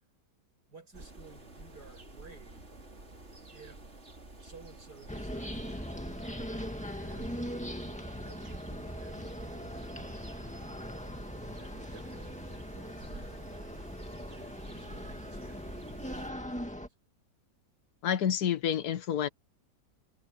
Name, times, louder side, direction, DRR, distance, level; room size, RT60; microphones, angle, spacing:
voice 1, 0.7-2.7 3.5-3.8 4.4-6.1 7.0-7.4 8.1-10.0 11.5-13.3 14.2-16.9, right 3 dB, 65° right, 6.5 m, -55 dB
sound 1, 0.9-16.3, right 2 dB, 40° right, 3.5 m, -49 dB
sound 2, 5.1-16.9, equal, 5° left, 1.9 m, -40 dB
voice 2, 18.0-19.3, left 9 dB, 65° left, 1.5 m, -29 dB
omnidirectional pair, 1.9 m